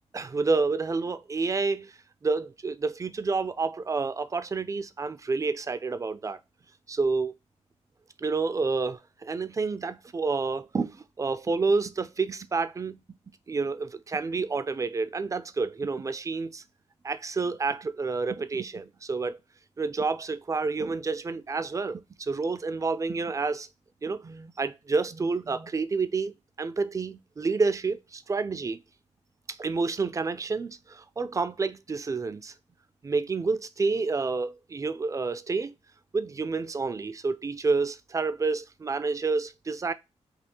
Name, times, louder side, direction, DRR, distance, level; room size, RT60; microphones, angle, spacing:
voice 1, 0.1-2.0 2.2-6.4 6.9-7.3 8.2-13.0 13.5-16.6 17.0-19.4 19.8-23.7 24.0-28.8 29.5-32.5 33.0-35.7 36.1-39.9, right 4 dB, 25° right, 0.3 m, -29 dB
3.3 x 2.4 x 2.9 m
cardioid pair, 75°, 12 cm